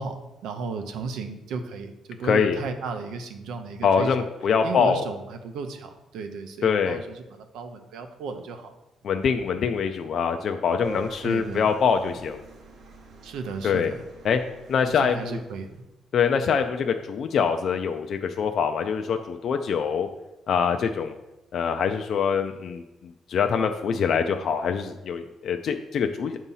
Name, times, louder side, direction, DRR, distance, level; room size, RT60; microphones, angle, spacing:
voice 1, 0.0-4.3 4.6-8.7 11.2-11.7 13.2-14.1 14.8-15.8, right 4 dB, 90° right, 7 dB, 0.6 m, -34 dB
voice 2, 2.2-2.6 3.8-5.1 6.6-7.0 9.0-12.4 13.6-13.9 14.2-14.4 14.7-15.4 16.1-20.1 20.5-21.1 21.5-22.8 23.3-26.4, left 6 dB, 50° left, 6 dB, 0.3 m, -24 dB
sound 1, 10.8-15.8, right 1 dB, 55° right, 0.7 m, -44 dB
7.1 x 2.7 x 5.5 m, 0.98 s
cardioid pair, 150°, 0 cm